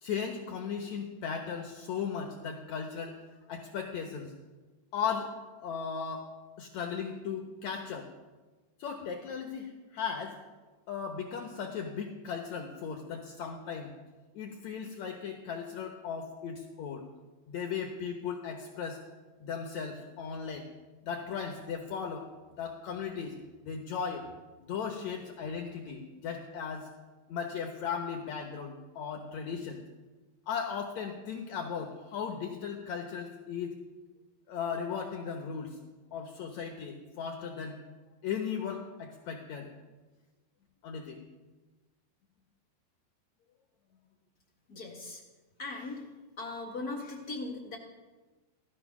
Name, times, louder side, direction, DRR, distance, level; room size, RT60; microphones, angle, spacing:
voice 1, 0.0-3.2 3.5-4.3 4.9-5.3 5.6-6.3 6.6-8.1 8.8-10.4 10.9-13.9 14.3-17.0 17.5-19.0 19.4-20.6 21.1-22.3 22.6-23.4 23.6-24.3 24.6-26.9 27.3-29.8 30.5-33.8 34.5-35.8 36.1-37.8 38.2-39.7 40.8-41.2, left 6 dB, 65° left, 3 dB, 1.8 m, -37 dB
voice 2, 44.7-45.2 45.6-46.1 46.4-47.8, left 3 dB, 45° left, 1 dB, 1.2 m, -39 dB
17.0 x 14.0 x 6.1 m, 1.3 s
omnidirectional pair, 4.7 m